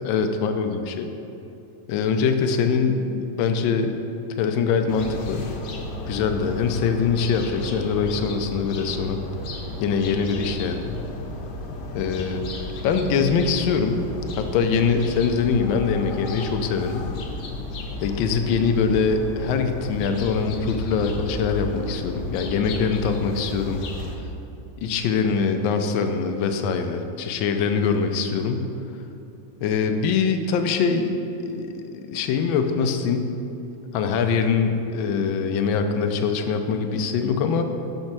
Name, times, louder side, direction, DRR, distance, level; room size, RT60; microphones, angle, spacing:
voice 1, 0.0-1.1 1.9-4.0 4.4-5.5 6.0-9.2 9.8-11.0 11.9-14.0 14.4-17.1 18.0-23.8 24.8-28.7 29.6-31.1 31.4-33.3 33.9-37.6, left 5 dB, 85° left, 7 dB, 1.4 m, -23 dB
sound 1, 4.9-24.1, left 2 dB, 70° left, 1.4 m, -34 dB
6.3 x 5.4 x 5.9 m, 2.9 s
omnidirectional pair, 2.1 m